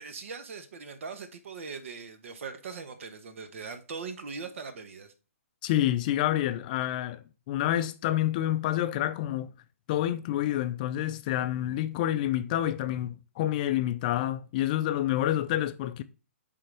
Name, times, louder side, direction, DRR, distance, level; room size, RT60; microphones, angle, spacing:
voice 1, 0.0-5.1, right 5 dB, 60° right, 1.2 m, -40 dB
voice 2, 5.6-9.5 9.9-16.0, left 13 dB, 35° left, 0.5 m, -28 dB
8.9 x 3.9 x 3.4 m
hypercardioid pair, 145°, 8 cm